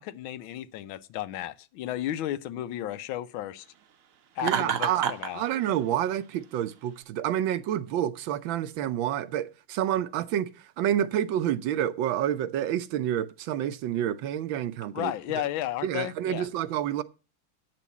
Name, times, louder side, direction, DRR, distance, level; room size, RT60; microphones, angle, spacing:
voice 1, 0.0-3.7 4.4-5.4 14.9-16.5, left 13 dB, 85° left, 1.5 m, -33 dB
Laughter, 4.4-5.3, right 8 dB, 55° right, 1.0 m, -28 dB
voice 2, 4.4-5.1 5.3-15.4 15.8-17.0, right 11 dB, 75° right, 1.4 m, -29 dB
8.6 x 6.0 x 8.2 m
omnidirectional pair, 2.2 m